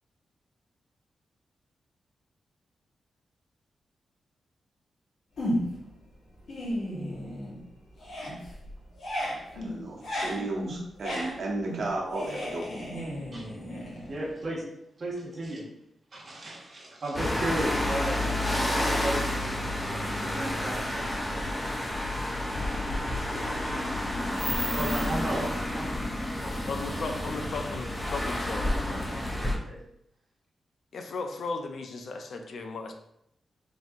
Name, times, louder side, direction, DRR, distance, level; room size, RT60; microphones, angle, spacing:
sound 1, 5.4-5.9 6.3-7.7 7.9-14.5, equal, 80° left, 1.5 m, -34 dB
voice 1, 9.5-12.6, right 2 dB, 65° right, -1 dB, 0.9 m, -34 dB
voice 2, 14.1-14.6 15.0-15.6 16.1-18.2 19.0-19.5 20.1-21.3 24.7-25.9 26.4-26.5 28.6-29.8, right 1 dB, 35° right, -4 dB, 1.2 m, -35 dB
sound 2, 17.1-29.5, left 1 dB, 15° left, 0.6 m, -30 dB
voice 3, 26.7-29.1 30.9-32.9, left 3 dB, 60° left, 5 dB, 0.4 m, -36 dB
4.0 x 2.7 x 3.5 m, 0.77 s
wide cardioid pair, 165°, 0 cm